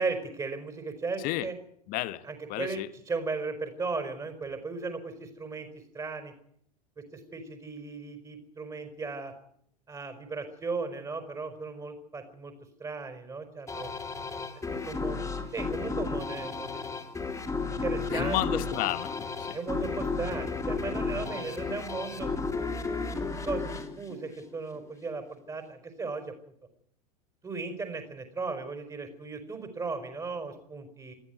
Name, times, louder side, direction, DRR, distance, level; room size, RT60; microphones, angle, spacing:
voice 1, 0.0-1.5 2.2-5.7 5.9-6.3 7.0-9.3 9.9-12.5 12.8-13.9 14.7-15.2 15.5-16.8 17.6-18.6 19.5-22.4 23.1-26.3 27.4-31.1, right 4 dB, 20° right, 6 dB, 4.6 m, -36 dB
voice 2, 1.2-1.5 1.9-2.2 2.5-2.9 18.1-19.6, left 17 dB, 45° left, 14 dB, 1.2 m, -32 dB
sound 1, 13.7-24.9, left 4 dB, 15° left, 3.1 m, -33 dB
20.0 x 14.0 x 9.4 m, 0.70 s
figure-of-eight pair, 80°, 21 cm